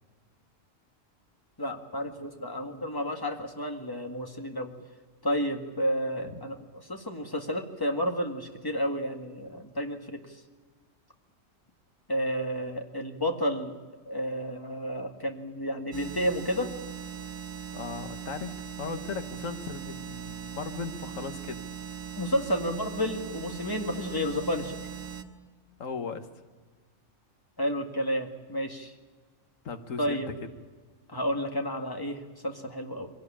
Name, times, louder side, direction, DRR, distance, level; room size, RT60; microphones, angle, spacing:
voice 1, 1.6-4.7 5.2-10.2 12.1-13.7 14.1-16.7 22.2-24.8 27.6-28.9 30.0-30.3 31.1-33.1, equal, 15° left, 4 dB, 1.9 m, -31 dB
sound 1, 15.9-25.2, right 7 dB, 85° right, 1.7 m, -40 dB
voice 2, 17.7-21.6 25.8-26.3 29.6-30.3, left 5 dB, 90° left, 8 dB, 1.7 m, -37 dB
23.0 x 17.5 x 8.6 m, 1.4 s
omnidirectional pair, 1.3 m